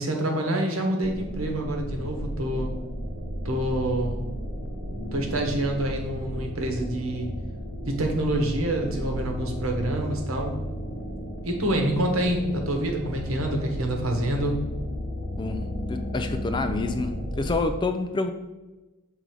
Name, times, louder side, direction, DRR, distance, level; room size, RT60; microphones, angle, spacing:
voice 1, 0.0-2.7 3.4-4.2 5.1-7.3 7.9-10.5 11.4-14.6, right 1 dB, 70° right, 2 dB, 1.2 m, -27 dB
sound 1, 1.0-17.6, equal, 75° left, 1.2 m, -33 dB
voice 2, 15.9-18.3, left 3 dB, 20° left, 8 dB, 0.3 m, -28 dB
6.8 x 3.7 x 4.7 m, 1.1 s
head